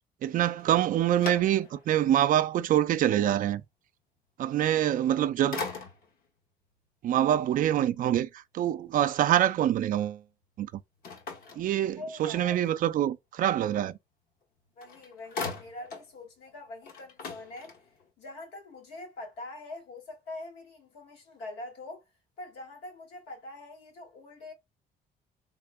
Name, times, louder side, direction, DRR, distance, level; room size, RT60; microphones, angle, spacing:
voice 1, 0.2-3.6 4.4-5.6 7.0-8.3 8.5-10.2 10.6-10.7 11.6-14.0, right 11 dB, 55° right, 0.4 m, -25 dB
sound 1, 0.6-2.0 2.5-2.6 4.9-5.2 5.5-6.3 11.0-12.3 14.4-14.5 14.8-16.1 16.5-16.6 16.8-18.1, left 4 dB, 60° left, 1.0 m, -40 dB
voice 2, 12.0-12.7 14.8-17.8 18.2-22.0 22.4-24.5, left 2 dB, 85° left, 2.0 m, -44 dB
3.6 x 3.3 x 2.2 m
cardioid pair, 110°, 17 cm